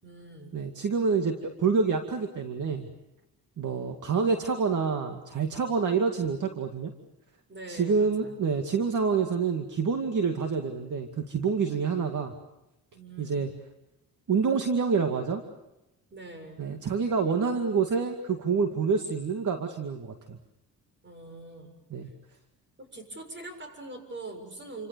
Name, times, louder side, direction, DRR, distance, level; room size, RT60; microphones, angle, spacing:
voice 1, 0.0-0.6 7.5-8.4 12.9-13.4 16.1-16.6 21.0-21.7 22.8-24.9, right 2 dB, 30° right, 7 dB, 7.0 m, -43 dB
voice 2, 0.5-2.9 3.6-6.9 7.7-12.3 13.2-13.5 14.3-15.4 16.6-20.4 21.9-22.1, right 5 dB, 55° right, 5 dB, 2.3 m, -27 dB
29.0 x 26.5 x 6.9 m, 0.92 s
cardioid pair, 115°, 37 cm